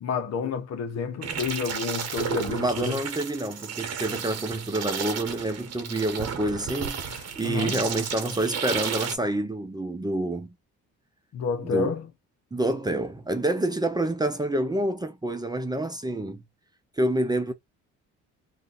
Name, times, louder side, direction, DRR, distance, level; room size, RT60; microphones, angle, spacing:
voice 1, 0.0-3.0 4.1-4.2 7.1-7.8 11.3-12.1, left 5 dB, 60° left, 0.8 m, -30 dB
sound 1, 1.2-9.2, right 7 dB, 55° right, 0.9 m, -33 dB
voice 2, 2.5-7.0 7.4-10.5 11.6-11.9 12.5-16.4 17.0-17.5, right 1 dB, 15° right, 0.6 m, -27 dB
2.5 x 2.4 x 3.9 m
cardioid pair, 90°, 30 cm